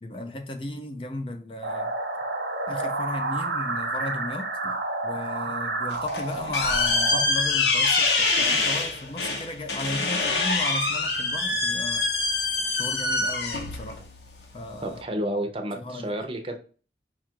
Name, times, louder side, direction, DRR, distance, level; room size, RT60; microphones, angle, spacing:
voice 1, 0.0-1.9 2.7-4.8 5.0-12.1 12.7-14.0 14.5-15.0 15.8-16.1, left 2 dB, 30° left, 0.4 m, -35 dB
sound 1, 1.6-7.2, right 2 dB, 80° right, 0.9 m, -30 dB
sound 2, 5.9-15.0, left 3 dB, 75° left, 0.9 m, -25 dB
voice 2, 14.8-16.6, right 1 dB, 30° right, 0.6 m, -30 dB
4.7 x 2.4 x 4.4 m
head